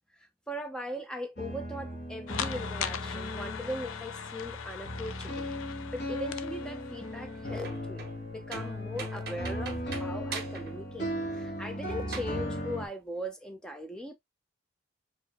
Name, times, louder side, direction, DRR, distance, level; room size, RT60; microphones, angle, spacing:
voice 1, 0.1-8.0 8.3-14.1, equal, 5° left, 0.7 m, -39 dB
sound 1, 1.4-12.9, equal, 50° left, 1.3 m, -37 dB
sound 2, 2.3-7.5, left 8 dB, 90° left, 0.5 m, -40 dB
sound 3, 7.5-8.3 8.5-10.8 11.1-11.2 12.1-12.3, right 4 dB, 50° right, 1.0 m, -41 dB
4.8 x 2.8 x 3.0 m
head